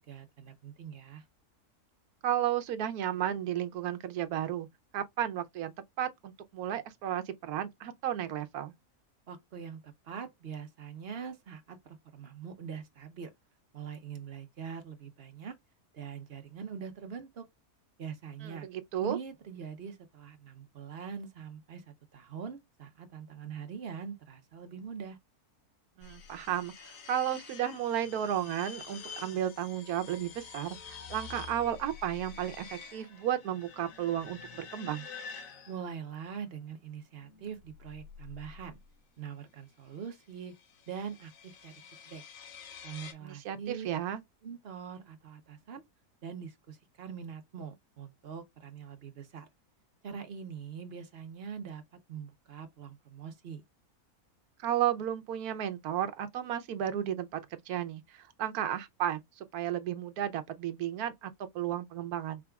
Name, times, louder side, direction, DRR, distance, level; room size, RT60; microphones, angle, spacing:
voice 1, 0.1-1.2 9.3-13.3 13.7-15.5 15.9-17.4 18.0-18.7 19.0-25.2 35.7-38.8 39.2-40.5 40.9-42.2 42.8-43.9 44.4-45.8 46.2-49.5 50.0-51.8 52.1-53.6, right 7 dB, 50° right, 0.9 m, -43 dB
voice 2, 2.2-4.7 4.9-8.7 18.4-19.2 26.0-35.1 43.2-44.2 54.6-62.4, right 11 dB, 80° right, 1.2 m, -33 dB
sound 1, 26.0-36.2 37.2-39.0 40.2-43.1, left 6 dB, 65° left, 1.1 m, -48 dB
4.9 x 3.4 x 2.3 m
omnidirectional pair, 1.6 m